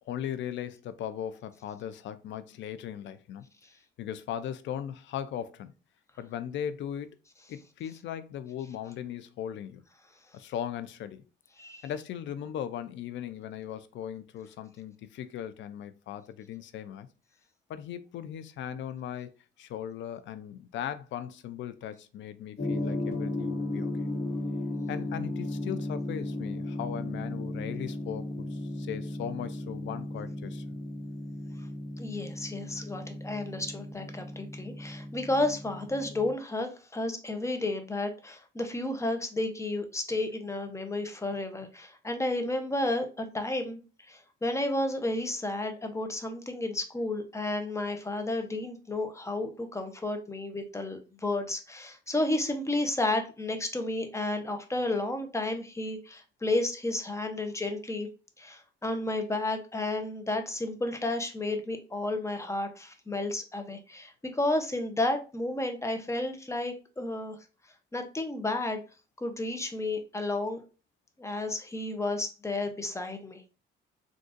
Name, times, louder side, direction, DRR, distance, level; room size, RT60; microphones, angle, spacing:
voice 1, 0.1-3.4 4.0-5.7 6.2-7.1 7.5-9.8 10.3-11.2 11.8-17.1 17.7-19.3 19.6-23.9 24.9-30.6, left 9 dB, 70° left, 0.4 m, -38 dB
Gong, 22.6-36.3, left 1 dB, 45° left, 1.2 m, -35 dB
voice 2, 32.0-43.8 44.1-58.1 58.4-67.4 67.9-68.8 69.2-70.6 71.2-73.4, left 2 dB, 15° left, 0.7 m, -32 dB
3.8 x 2.4 x 2.5 m
cardioid pair, 90°, 20 cm